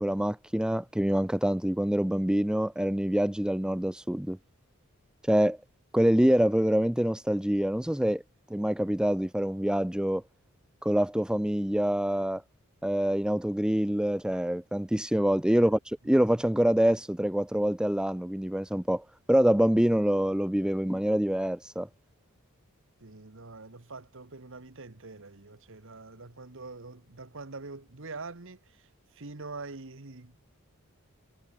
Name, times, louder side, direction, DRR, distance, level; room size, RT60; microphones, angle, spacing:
voice 1, 0.0-4.4 5.2-5.6 5.9-8.2 8.5-10.2 10.8-12.4 12.8-21.9, equal, 5° right, 0.5 m, -26 dB
voice 2, 23.0-30.4, right 3 dB, 60° right, 1.6 m, -44 dB
head